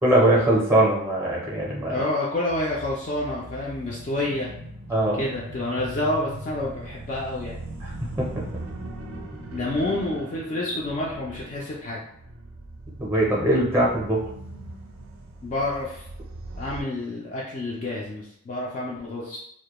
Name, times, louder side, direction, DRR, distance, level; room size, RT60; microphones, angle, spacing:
voice 1, 0.0-1.9 4.9-5.2 7.8-7.9 8.2-8.3 13.0-14.2, right 1 dB, 10° right, -4 dB, 0.6 m, -21 dB
voice 2, 1.9-4.5 5.2-7.6 9.5-12.0 15.4-16.1 16.6-19.4, left 1 dB, 35° left, -4 dB, 0.3 m, -28 dB
North Shaman Ambiance, 2.5-16.8, right 2 dB, 70° right, 0.4 m, -39 dB
2.2 x 2.1 x 2.9 m, 0.72 s
head